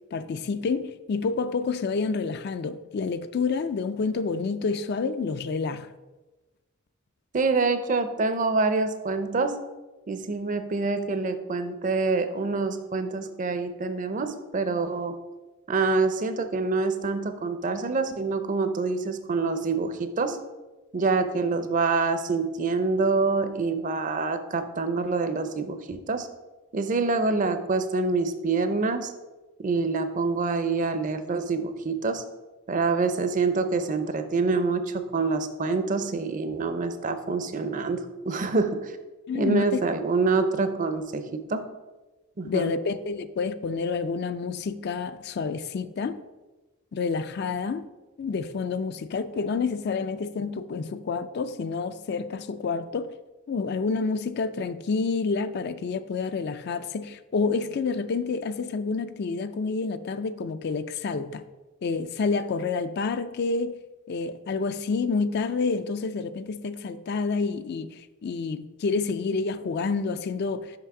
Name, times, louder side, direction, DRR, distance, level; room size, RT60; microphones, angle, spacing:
voice 1, 0.1-5.9 39.3-39.8 42.4-46.2 46.9-47.8 48.2-53.2 53.5-61.4 61.8-63.8 64.1-70.8, left 4 dB, 50° left, 0.3 m, -28 dB
voice 2, 7.3-9.6 10.1-15.2 15.7-20.4 20.9-26.3 26.7-29.1 29.6-32.2 32.7-38.9 39.3-41.6 42.4-42.7, right 4 dB, 40° right, 0.5 m, -26 dB
5.9 x 5.7 x 4.8 m
head